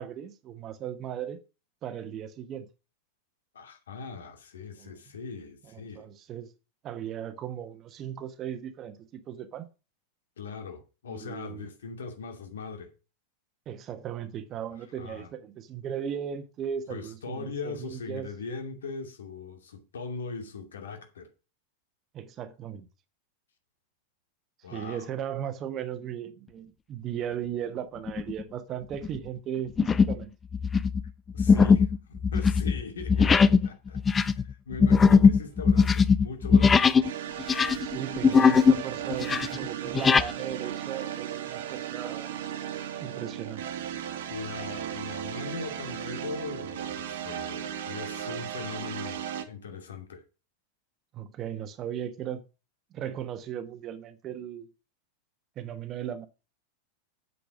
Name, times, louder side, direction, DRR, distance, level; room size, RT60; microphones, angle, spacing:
voice 1, 0.0-1.4 1.8-2.7 4.8-4.9 5.7-6.5 6.8-9.7 11.1-11.7 13.7-18.3 22.1-22.9 24.7-30.3 37.8-42.4 43.0-43.6 51.1-52.4 52.9-54.7 55.6-56.3, right 9 dB, 30° right, 1.3 m, -37 dB
voice 2, 3.5-6.1 10.4-12.9 15.0-15.3 16.9-21.3 24.6-25.1 31.3-36.9 44.3-50.2, left 4 dB, 65° left, 2.5 m, -40 dB
sound 1, 28.1-28.4 28.9-29.2 29.8-30.2 30.5-37.1 37.4-38.8 39.1-40.3, left 5 dB, 20° left, 0.6 m, -20 dB
sound 2, 37.0-49.4, right 10 dB, 55° right, 1.6 m, -36 dB
8.4 x 7.8 x 6.2 m
figure-of-eight pair, 90°, 0 cm